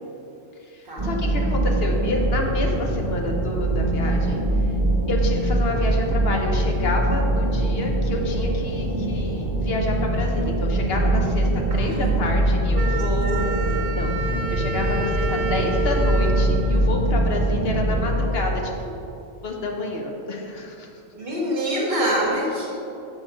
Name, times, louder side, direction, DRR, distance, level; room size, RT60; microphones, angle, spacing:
voice 1, 0.7-4.4 5.1-14.1 14.5-19.0 19.4-20.9, left 2 dB, 55° left, 1 dB, 1.0 m, -29 dB
sound 1, 1.0-18.3, right 1 dB, 20° right, 1.5 m, -23 dB
voice 2, 11.7-12.7 21.1-22.8, equal, 45° right, -4 dB, 1.7 m, -26 dB
Wind instrument woodwind instrument, 12.8-17.6, right 2 dB, 85° right, 1.0 m, -31 dB
6.3 x 5.7 x 4.9 m, 2.7 s
omnidirectional pair, 1.3 m